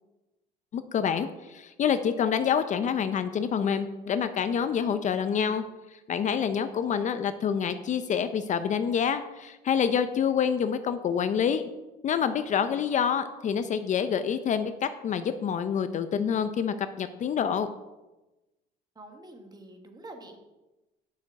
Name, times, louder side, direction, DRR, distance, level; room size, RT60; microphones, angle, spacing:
voice 1, 0.7-5.6 5.9-11.6 12.0-17.7, left 7 dB, 45° left, 10 dB, 0.6 m, -27 dB
voice 2, 18.9-20.4, right 2 dB, 25° right, 5 dB, 1.4 m, -46 dB
8.6 x 6.6 x 4.8 m, 1.1 s
cardioid pair, 110°, 17 cm